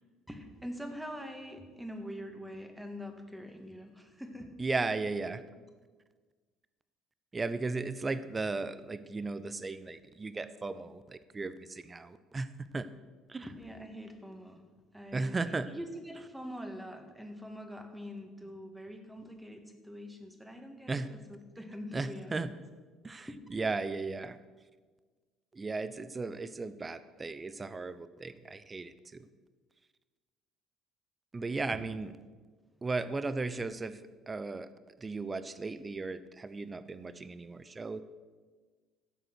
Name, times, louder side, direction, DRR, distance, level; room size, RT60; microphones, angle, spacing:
voice 1, 0.3-4.6 13.5-14.6 14.9-15.4 15.7-22.5 23.3-23.4 31.7-31.8 33.5-33.6, equal, 5° right, 5 dB, 1.9 m, -44 dB
voice 2, 4.6-5.4 7.3-12.9 13.3-13.5 15.1-15.7 20.9-21.1 21.9-22.5 23.0-24.4 25.5-29.3 31.3-32.1 32.8-34.0 34.3-34.7 35.0-38.0, right 3 dB, 25° right, 14 dB, 0.7 m, -36 dB
13.0 x 7.7 x 6.1 m, 1.4 s
figure-of-eight pair, 55°, 0 cm